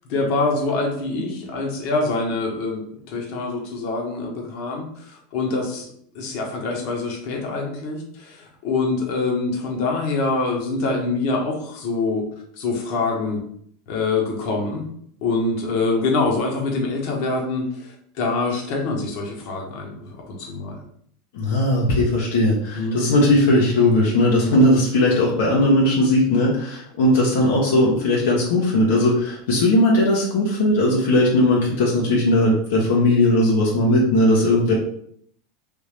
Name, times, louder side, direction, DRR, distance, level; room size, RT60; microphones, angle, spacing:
voice 1, 0.1-2.8 3.1-5.8 6.1-12.2 12.6-13.4 13.9-14.9 15.2-20.8 22.7-23.0 24.4-24.6, left 3 dB, 60° left, 0 dB, 1.1 m, -25 dB
voice 2, 21.3-34.7, left 1 dB, 80° left, -3 dB, 0.9 m, -18 dB
3.4 x 2.7 x 3.3 m, 0.65 s
supercardioid pair, 120°, 0 cm